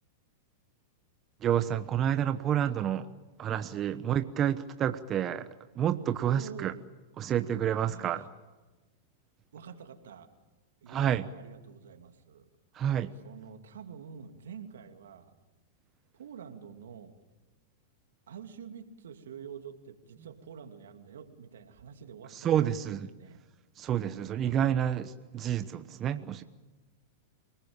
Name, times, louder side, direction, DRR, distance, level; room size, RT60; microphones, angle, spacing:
voice 1, 1.4-3.1 3.4-5.5 5.7-6.7 7.2-8.3 10.9-11.3 12.7-13.1 22.3-23.1 23.8-26.4, right 10 dB, 30° right, 10 dB, 1.0 m, -29 dB
voice 2, 6.3-6.8 7.9-8.3 9.5-10.3 10.8-12.5 13.2-15.3 16.1-17.1 18.3-23.4 24.2-24.7, right 7 dB, 80° right, 6 dB, 2.7 m, -47 dB
28.0 x 19.5 x 8.9 m, 1.2 s
hypercardioid pair, 110°, 0 cm